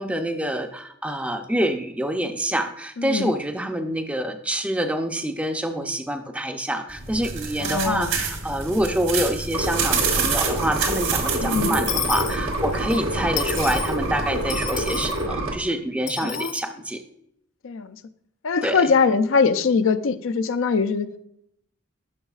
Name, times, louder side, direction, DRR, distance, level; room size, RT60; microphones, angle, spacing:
voice 1, 0.0-17.0 18.6-18.9, right 1 dB, 5° right, 6 dB, 0.5 m, -26 dB
voice 2, 3.0-3.3 7.6-8.1 11.4-11.8 16.2-16.5 17.6-17.9 18.4-21.1, left 5 dB, 70° left, 12 dB, 0.5 m, -22 dB
sound 1, 6.9-14.8, right 5 dB, 65° right, 1.7 m, -29 dB
sound 2, 9.5-15.5, right 1 dB, 85° right, 1.3 m, -27 dB
Dishes pots and pans / Coin (dropping), 11.9-13.0 13.4-14.0 14.5-15.2 16.1-16.6, left 9 dB, 35° left, 0.7 m, -31 dB
11.0 x 6.3 x 2.4 m, 0.74 s
head